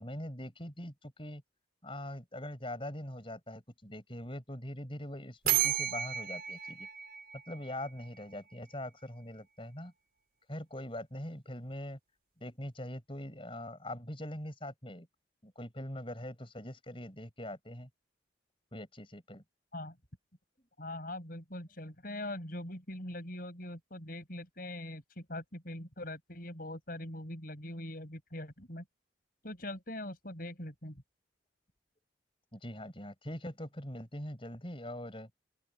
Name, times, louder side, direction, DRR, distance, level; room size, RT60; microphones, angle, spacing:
voice 1, 0.0-1.4 1.8-6.9 7.5-9.9 10.5-12.0 12.4-15.1 15.4-17.9 18.7-19.4 32.5-35.3, left 1 dB, 30° left, 7.3 m, -42 dB
sound 1, 5.5-8.2, right 11 dB, 55° right, 5.8 m, -33 dB
voice 2, 20.8-28.8 29.4-31.0, left 1 dB, 50° left, 7.6 m, -42 dB
open air
head